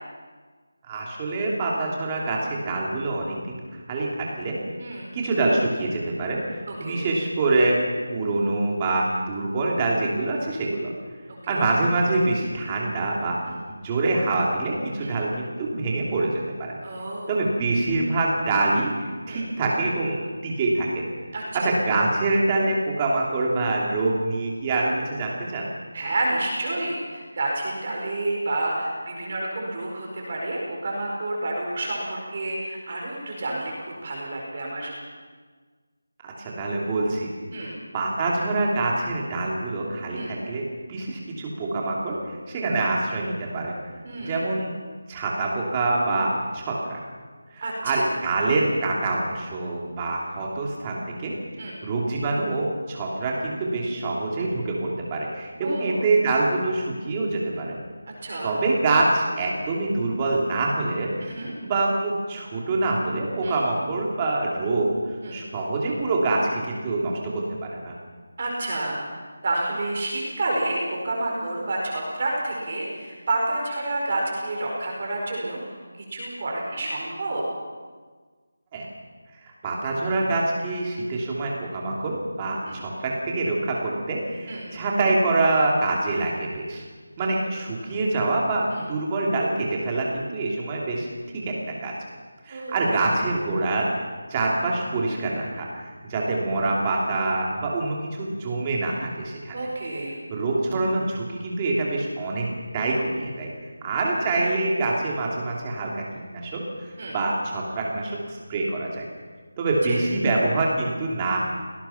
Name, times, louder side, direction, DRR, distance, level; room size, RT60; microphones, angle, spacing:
voice 1, 0.9-3.6 3.9-4.5 5.1-7.8 8.1-10.9 11.5-13.4 13.8-16.8 17.3-21.0 21.5-25.7 36.2-37.3 37.6-40.6 40.9-43.7 44.2-44.7 45.1-47.0 47.5-51.3 51.8-57.8 58.4-61.1 61.4-64.9 65.3-67.9 78.7-78.9 79.4-86.8 87.2-91.1 91.3-91.5 91.8-91.9 92.4-99.6 100.3-102.5 102.7-103.5 103.8-106.0 106.3-109.0 109.6-111.4, right 2 dB, 15° right, -2 dB, 2.8 m, -25 dB
voice 2, 4.8-5.1 6.7-7.1 11.3-11.7 13.4-13.5 15.0-15.2 16.8-17.4 19.3-19.4 21.3-21.8 25.9-34.9 37.5-37.7 40.1-40.3 44.0-44.4 47.6-48.1 51.6-51.7 55.6-56.1 58.2-58.5 61.2-61.5 63.4-63.6 65.2-65.4 68.4-69.0 69.4-75.7 76.1-77.4 82.7-82.8 84.5-84.7 87.2-87.3 88.7-88.8 92.5-93.2 99.5-100.2 107.0-107.1 109.9-110.0, right 2 dB, 30° right, -2 dB, 4.9 m, -29 dB
25.5 x 18.5 x 5.8 m, 1.5 s
figure-of-eight pair, 175°, 0 cm